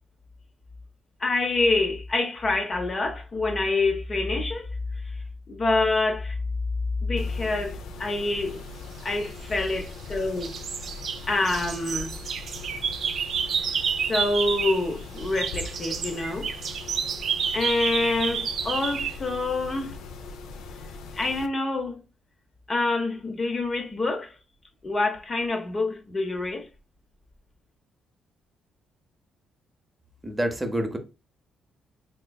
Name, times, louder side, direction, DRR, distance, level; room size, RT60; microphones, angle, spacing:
voice 1, 1.2-4.7 5.5-6.4 7.0-8.6 9.0-10.6 11.3-12.1 14.1-16.5 17.5-20.0 21.1-22.0 22.7-24.3 24.8-26.7, left 2 dB, 35° left, 0.7 m, -26 dB
Mechanisms, 7.2-21.5, left 3 dB, 85° left, 0.4 m, -41 dB
sound 1, 9.3-10.1 10.4-14.9 15.2-19.2, right 7 dB, 60° right, 0.4 m, -30 dB
voice 2, 30.2-31.0, right 1 dB, 15° right, 0.7 m, -27 dB
3.6 x 3.1 x 2.2 m
cardioid pair, 90°, 0 cm